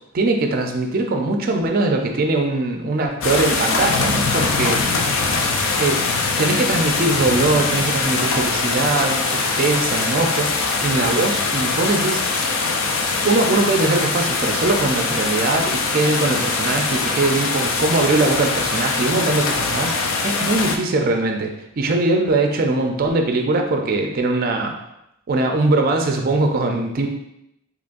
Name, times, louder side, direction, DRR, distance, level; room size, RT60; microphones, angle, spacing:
voice 1, 0.1-4.8 5.8-6.0 6.4-12.2 13.2-19.9 20.2-24.7 25.3-27.1, right 2 dB, 45° right, 3 dB, 0.4 m, -21 dB
sound 1, 3.2-20.8, left 4 dB, 80° left, 0.4 m, -22 dB
3.7 x 3.0 x 2.5 m, 0.82 s
head